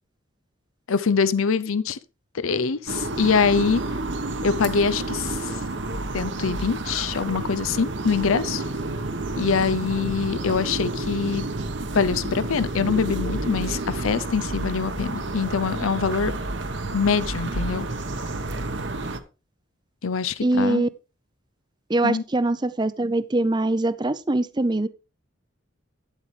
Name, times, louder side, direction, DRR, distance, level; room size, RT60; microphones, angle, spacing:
voice 1, 0.9-2.0 2.3-3.8 4.4-5.6 6.1-8.6 9.4-11.4 11.9-16.3 16.9-17.9 20.0-20.8 22.0-22.2, left 5 dB, 85° left, 0.6 m, -24 dB
sound 1, 2.9-19.2, right 2 dB, 60° right, 1.1 m, -30 dB
voice 2, 20.4-20.9 21.9-24.9, right 2 dB, 20° right, 0.5 m, -23 dB
11.5 x 9.9 x 3.3 m
head